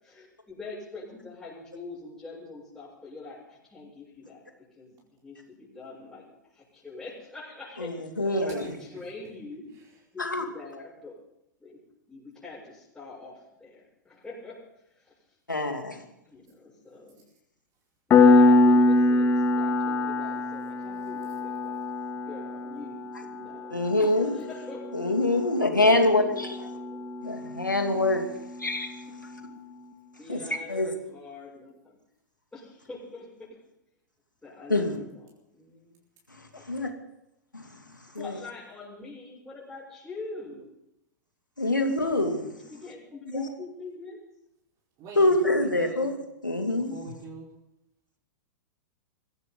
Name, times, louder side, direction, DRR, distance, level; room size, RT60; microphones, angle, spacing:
voice 1, 0.0-4.4 4.8-5.0 5.2-6.3 6.5-7.9 8.4-9.7 10.1-11.2 11.6-11.8 12.1-14.6 15.0-15.1 16.3-17.2 18.1-21.8 22.1-23.0 23.2-24.8 26.4-27.0 30.2-32.0 32.5-33.6 34.4-35.2 35.5-36.0 38.2-40.7 42.7-44.2, left 3 dB, 10° left, -8 dB, 7.4 m, -44 dB
voice 2, 7.8-8.7 10.2-10.4 15.5-16.0 23.7-24.3 24.9-26.7 27.2-28.2 28.6-28.9 30.3-30.4 30.7-30.9 34.7-35.0 36.4-36.9 37.5-37.7 38.1-38.4 41.6-42.5 43.3-43.4 45.2-46.1 46.4-46.9, left 2 dB, 90° left, 5 dB, 2.7 m, -25 dB
voice 3, 8.5-9.0 9.7-9.8 45.0-46.1 46.7-47.5, right 4 dB, 35° right, -2 dB, 4.7 m, -44 dB
Piano, 18.1-28.5, left 2 dB, 25° left, 2.3 m, -24 dB
23.0 x 16.0 x 4.0 m, 0.85 s
figure-of-eight pair, 100°, 10 cm